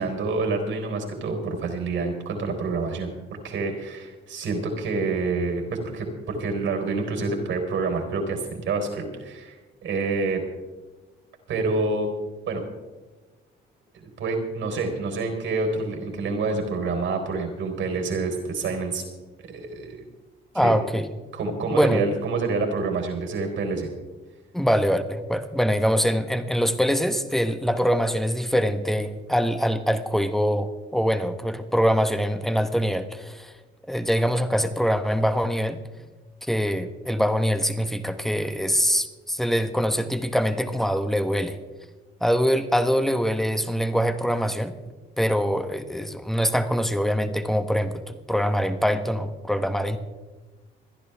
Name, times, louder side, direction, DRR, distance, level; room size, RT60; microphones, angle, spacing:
voice 1, 0.0-3.1 3.4-9.6 9.8-10.4 11.5-12.1 12.5-12.6 13.9-19.0 19.5-20.0 20.5-20.7 21.3-23.9, right 3 dB, 75° right, 4 dB, 3.9 m, -27 dB
voice 2, 20.5-21.1 21.7-22.0 24.5-33.5 33.9-35.8 36.4-41.6 42.2-44.7 45.2-50.0, equal, ahead, 8 dB, 1.2 m, -24 dB
27.0 x 10.5 x 3.5 m, 1.2 s
cardioid pair, 90°, 20 cm